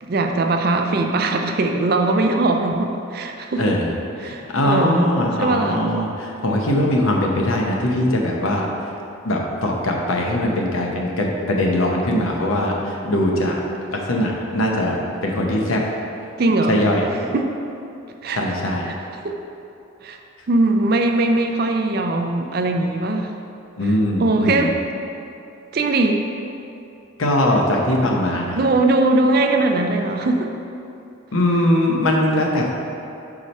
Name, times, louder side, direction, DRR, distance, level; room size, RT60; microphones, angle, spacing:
voice 1, 0.0-3.8 4.2-5.1 5.4-5.9 16.4-16.8 17.3-17.5 18.2-18.6 18.9-19.0 19.2-19.4 20.0-20.2 20.5-23.3 24.2-24.8 25.7-26.2 28.5-30.5, right 2 dB, 45° right, 4 dB, 0.4 m, -20 dB
voice 2, 3.6-3.9 4.2-8.7 9.2-13.6 13.9-15.8 16.7-17.0 18.3-18.9 23.8-24.7 27.2-28.6 31.3-32.7, left 1 dB, 75° left, 0 dB, 0.8 m, -21 dB
4.8 x 4.3 x 5.3 m, 2.7 s
head